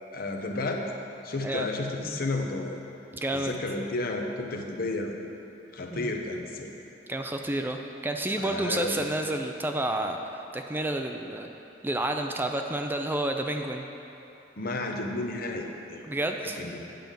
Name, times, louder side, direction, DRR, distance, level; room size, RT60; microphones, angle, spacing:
voice 1, 0.1-0.8 1.2-2.8 3.3-5.2 5.7-6.7 8.4-9.0 14.6-16.0 16.6-16.9, left 2 dB, 55° left, 2 dB, 0.9 m, -32 dB
voice 2, 3.1-3.5 5.9-6.1 7.1-11.5 11.8-13.8 16.0-16.6, right 1 dB, 10° right, 4 dB, 0.4 m, -30 dB
9.2 x 5.3 x 7.4 m, 2.9 s
head